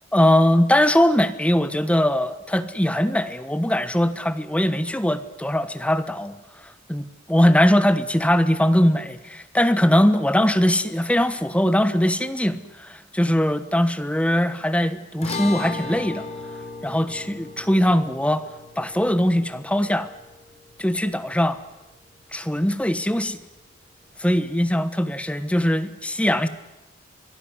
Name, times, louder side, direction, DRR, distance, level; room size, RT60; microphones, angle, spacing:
voice 1, 0.1-6.3 6.9-16.2 16.8-18.4 18.8-20.1 20.8-21.6 22.3-23.4 24.2-26.5, equal, 5° left, 12 dB, 1.2 m, -21 dB
sound 1, 15.2-21.7, left 3 dB, 35° left, 4.1 m, -36 dB
25.0 x 18.5 x 9.7 m, 1.0 s
head